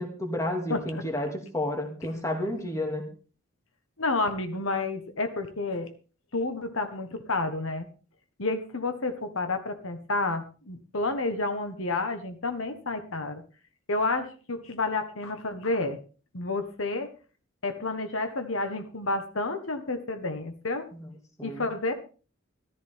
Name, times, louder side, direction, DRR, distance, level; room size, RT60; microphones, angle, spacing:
voice 1, 0.0-3.1 20.9-21.1 21.4-21.7, left 1 dB, 15° left, 3 dB, 2.5 m, -31 dB
voice 2, 0.7-1.0 4.0-5.9 6.3-7.8 8.4-13.4 13.9-16.0 16.3-17.1 17.6-20.9 21.4-21.9, left 3 dB, 70° left, 8 dB, 1.5 m, -30 dB
14.5 x 14.0 x 3.6 m, 0.37 s
head